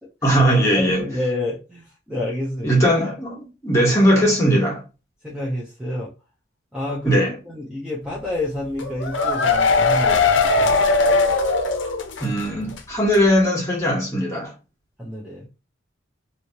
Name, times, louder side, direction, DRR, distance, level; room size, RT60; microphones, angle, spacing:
voice 1, 0.2-1.0 2.6-4.8 7.0-7.3 12.2-14.5, equal, 15° left, 1.4 m, -19 dB
voice 2, 0.7-2.8 5.2-6.1 6.7-10.8 15.0-15.5, left 1 dB, 5° right, 0.6 m, -29 dB
sound 1, 8.8-12.4 12.7-12.8 13.1-13.2, left 3 dB, 70° left, 0.6 m, -19 dB
3.1 x 2.7 x 2.8 m
head